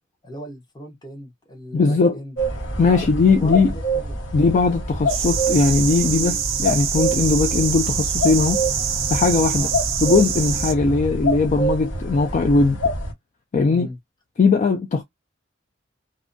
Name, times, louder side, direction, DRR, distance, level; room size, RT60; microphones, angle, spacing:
voice 1, 0.2-2.4 2.8-4.3 9.5-9.8 10.9-11.1 13.7-14.0, left 1 dB, 20° left, 0.8 m, -38 dB
voice 2, 1.7-2.2 2.8-3.7 4.3-8.6 9.1-9.7 10.0-12.8 13.5-13.9 14.4-15.0, left 4 dB, 40° left, 0.3 m, -19 dB
sound 1, 2.4-13.1, right 1 dB, 75° left, 1.1 m, -26 dB
sound 2, 5.1-10.7, right 9 dB, 85° right, 0.5 m, -25 dB
2.6 x 2.2 x 2.5 m
head